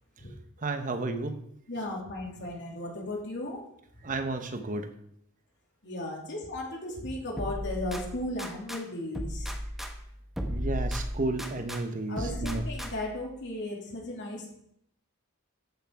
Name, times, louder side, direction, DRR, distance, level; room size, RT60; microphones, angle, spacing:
voice 1, 0.6-1.4 4.0-4.9 10.5-12.6, right 2 dB, 40° right, 8 dB, 0.9 m, -32 dB
voice 2, 1.7-3.6 5.8-9.5 12.1-14.5, left 1 dB, 60° left, -1 dB, 2.8 m, -36 dB
sound 1, 7.4-8.8 9.1-11.8 12.2-13.2, equal, ahead, 1.0 m, -35 dB
13.5 x 6.6 x 4.6 m, 0.74 s
head